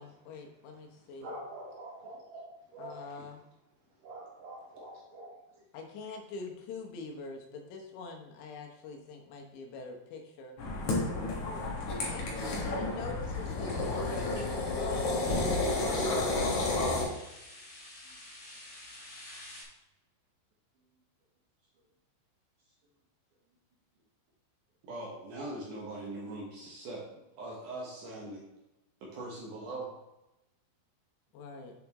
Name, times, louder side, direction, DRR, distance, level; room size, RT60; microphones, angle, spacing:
voice 1, 0.0-1.3 2.8-3.4 5.7-10.5 12.1-16.3 31.3-31.7, left 3 dB, 80° left, 3 dB, 3.3 m, -44 dB
voice 2, 1.0-3.1 4.0-5.6, right 1 dB, 55° right, -5 dB, 3.1 m, -46 dB
sound 1, 10.6-17.1, left 2 dB, 55° left, 2.2 m, -31 dB
sound 2, 13.6-15.6 16.1-19.6, left 1 dB, 35° left, 1.4 m, -50 dB
voice 3, 24.8-27.0 27.4-28.4 29.0-29.9, right 2 dB, 70° right, -3 dB, 1.9 m, -41 dB
8.4 x 7.1 x 3.0 m, 0.92 s
omnidirectional pair, 5.2 m